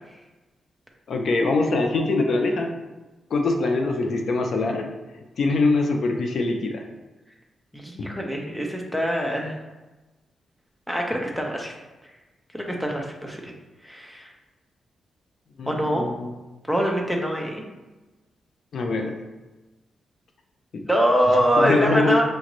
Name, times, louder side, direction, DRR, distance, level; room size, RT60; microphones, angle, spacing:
voice 1, 1.1-2.7 3.3-4.9 5.4-6.8 15.6-16.3 18.7-19.1 20.7-20.8 21.6-22.2, left 3 dB, 55° left, 3 dB, 0.5 m, -23 dB
voice 2, 7.7-9.6 10.9-11.7 12.5-13.5 13.8-14.3 15.7-16.1 16.7-17.6 20.8-22.2, equal, ahead, 0 dB, 0.5 m, -24 dB
6.2 x 2.5 x 3.0 m, 1.1 s
wide cardioid pair, 160°, 0 cm